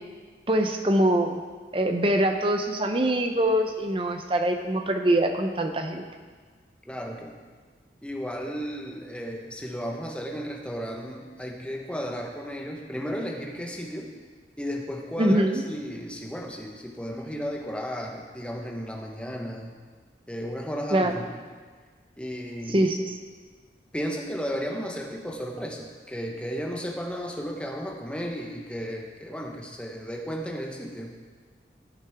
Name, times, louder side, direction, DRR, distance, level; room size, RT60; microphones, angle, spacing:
voice 1, 0.5-1.4 1.7-6.0 15.2-15.7 20.9-21.1 22.7-23.2, right 1 dB, 30° right, 5 dB, 0.8 m, -23 dB
voice 2, 6.9-7.4 8.0-14.1 14.6-19.8 20.3-21.4 22.2-22.9 23.9-31.1, equal, 5° left, 0 dB, 1.1 m, -34 dB
16.0 x 8.0 x 3.6 m, 1.5 s
head